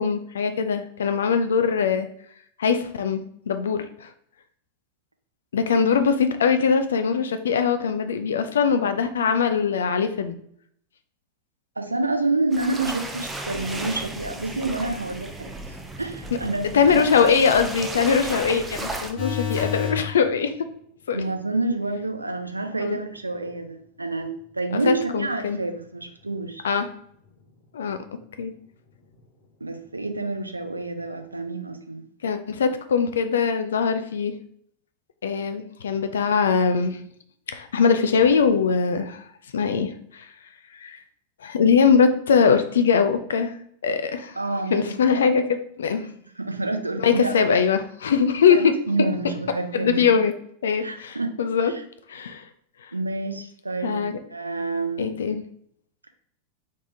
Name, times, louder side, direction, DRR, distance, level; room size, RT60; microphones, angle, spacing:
voice 1, 0.0-2.1 2.6-4.1 5.5-10.3 16.7-20.5 21.1-21.2 22.8-23.0 24.8-25.6 26.6-26.9 27.7-28.0 28.4-28.5 32.2-34.4 35.2-37.0 37.5-39.2 39.5-40.3 40.7-41.0 41.4-43.5 43.8-44.4 44.7-45.4 45.8-46.1 47.0-48.7 49.7-50.3 50.6-51.7 52.1-52.4 52.8-52.9 53.8-54.2 55.0-55.4, left 6 dB, 65° left, 9 dB, 0.4 m, -21 dB
voice 2, 11.8-17.4 21.1-26.6 29.6-32.0 44.4-45.3 46.4-47.6 48.5-50.0 50.8-51.3 51.7-51.8 52.9-54.0 54.3-55.2, right 2 dB, 80° right, 7 dB, 0.4 m, -28 dB
sound 1, 12.5-19.1, right 2 dB, 10° right, 0.5 m, -34 dB
sound 2, 19.2-20.1 26.4-26.5, left 8 dB, 40° left, 1.4 m, -27 dB
4.1 x 3.4 x 2.6 m, 0.66 s
figure-of-eight pair, 90°, 0 cm